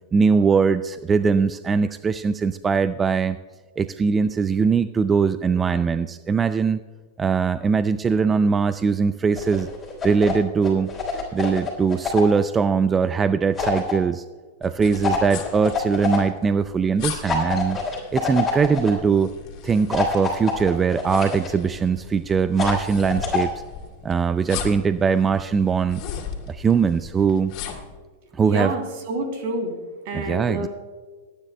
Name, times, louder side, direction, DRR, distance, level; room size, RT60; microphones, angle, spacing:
voice 1, 0.1-3.4 3.8-6.8 7.2-9.7 10.0-10.9 11.3-14.2 14.6-17.8 18.1-19.3 19.6-23.5 24.0-26.0 26.5-27.5 28.3-28.7 30.1-30.7, right 5 dB, 15° right, 12 dB, 0.3 m, -21 dB
sound 1, 9.3-10.4 10.6-12.4 13.6-13.9 15.0-16.2 17.2-18.9 19.9-21.5 22.6-23.5, left 4 dB, 15° left, 3.3 m, -26 dB
sound 2, 14.6-28.0, left 8 dB, 45° left, 2.4 m, -38 dB
voice 2, 28.4-29.7 30.0-30.7, right 2 dB, 60° right, 3 dB, 3.1 m, -28 dB
26.5 x 9.8 x 2.2 m, 1.4 s
supercardioid pair, 145°, 0 cm